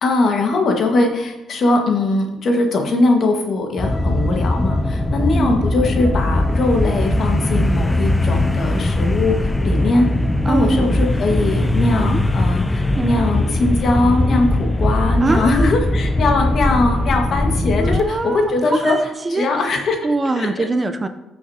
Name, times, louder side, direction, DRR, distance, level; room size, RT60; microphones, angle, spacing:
voice 1, 0.0-10.1 10.4-18.9 19.3-20.7, left 2 dB, 60° left, 3 dB, 1.6 m, -20 dB
sound 1, 3.8-18.2 18.6-18.7, left 1 dB, 15° left, 0.5 m, -19 dB
voice 2, 5.3-5.7 10.4-10.9 12.0-12.2 12.9-13.3 15.2-15.7 17.8-18.5 18.8-19.5 20.0-21.1, right 3 dB, 25° right, 9 dB, 0.6 m, -22 dB
14.5 x 6.5 x 2.8 m, 0.99 s
cardioid pair, 90°, 0 cm